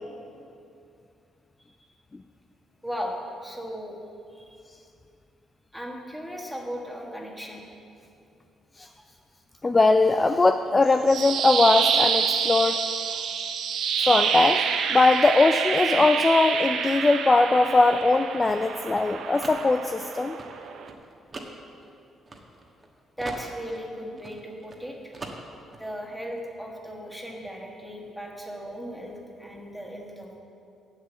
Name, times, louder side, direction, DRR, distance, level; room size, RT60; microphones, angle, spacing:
voice 1, 2.8-3.1 3.4-4.0 4.3-4.5 5.7-7.6 8.8-9.1 23.2-25.1 25.8-30.4, equal, ahead, -1 dB, 1.6 m, -37 dB
voice 2, 9.6-12.8 14.0-14.6 14.9-20.4, left 3 dB, 25° left, 8 dB, 0.3 m, -20 dB
sound 1, 10.8-20.9, right 7 dB, 70° right, 0.6 m, -27 dB
sound 2, 17.6-22.9 23.2-24.8 25.1-25.8, right 2 dB, 30° right, 1.1 m, -42 dB
7.4 x 6.6 x 8.1 m, 2.5 s
cardioid pair, 90°, 0 cm